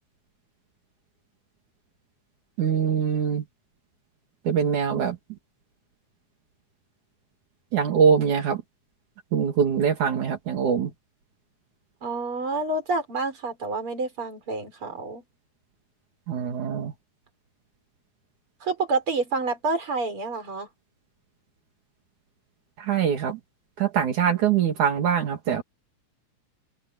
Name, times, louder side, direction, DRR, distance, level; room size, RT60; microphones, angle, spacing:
voice 1, 2.6-3.4 4.5-5.2 7.7-8.6 9.3-10.9 16.3-16.9 22.8-23.4 23.8-25.6, right 7 dB, 75° right, 4.1 m, -23 dB
voice 2, 12.0-15.2 18.6-20.7, right 3 dB, 45° right, 5.7 m, -28 dB
open air
omnidirectional pair, 3.5 m